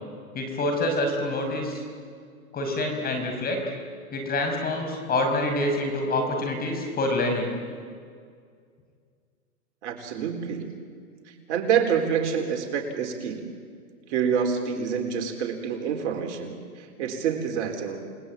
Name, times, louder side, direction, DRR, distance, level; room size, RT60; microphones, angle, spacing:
voice 1, 0.3-1.8 2.5-3.6 4.1-7.5, left 2 dB, 20° left, 4 dB, 5.4 m, -26 dB
voice 2, 9.8-10.8 11.5-13.4 14.1-18.0, right 7 dB, 50° right, 3 dB, 4.3 m, -27 dB
29.0 x 20.5 x 9.1 m, 2.1 s
hypercardioid pair, 135°, 45 cm